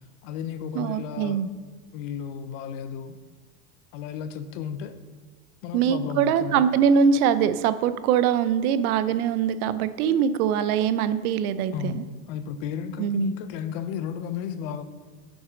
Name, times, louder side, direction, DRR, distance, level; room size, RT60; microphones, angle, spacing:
voice 1, 0.2-1.4 1.9-3.2 3.9-4.9 5.6-6.6 11.7-14.8, left 8 dB, 60° left, 11 dB, 0.8 m, -33 dB
voice 2, 0.7-1.5 5.7-12.0 13.0-13.3, right 7 dB, 80° right, 13 dB, 0.6 m, -23 dB
6.4 x 6.2 x 5.1 m, 1.5 s
supercardioid pair, 150°, 43 cm